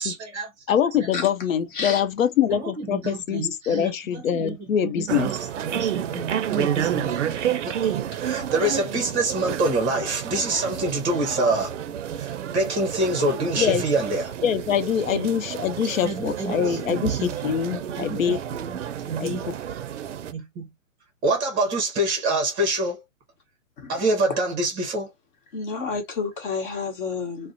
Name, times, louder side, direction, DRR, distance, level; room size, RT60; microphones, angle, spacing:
voice 1, 0.0-1.1 2.5-7.2 7.6-11.7 12.2-14.3 15.1-15.3 15.8-19.4 20.3-20.7 21.2-23.0 23.9-25.1, right 2 dB, 20° right, 0.7 m, -27 dB
voice 2, 0.7-5.3 13.6-13.8 14.4-18.4 19.2-19.5, left 9 dB, 80° left, 0.6 m, -24 dB
sound 1, 5.1-20.3, right 10 dB, 65° right, 0.5 m, -30 dB
voice 3, 25.5-27.5, left 4 dB, 40° left, 1.1 m, -30 dB
2.4 x 2.0 x 2.6 m
hypercardioid pair, 135°, 40 cm